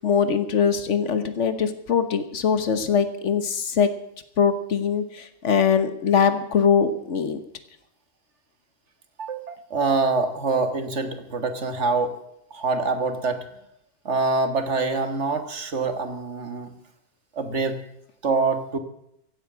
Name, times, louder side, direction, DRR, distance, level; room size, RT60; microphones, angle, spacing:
voice 1, 0.0-3.9 4.4-7.4, left 7 dB, 90° left, 10 dB, 1.5 m, -22 dB
voice 2, 9.2-12.2 12.5-13.4 14.1-16.7 17.3-17.8 18.2-18.8, right 3 dB, 80° right, 8 dB, 1.9 m, -25 dB
16.0 x 8.4 x 8.2 m, 0.77 s
omnidirectional pair, 1.2 m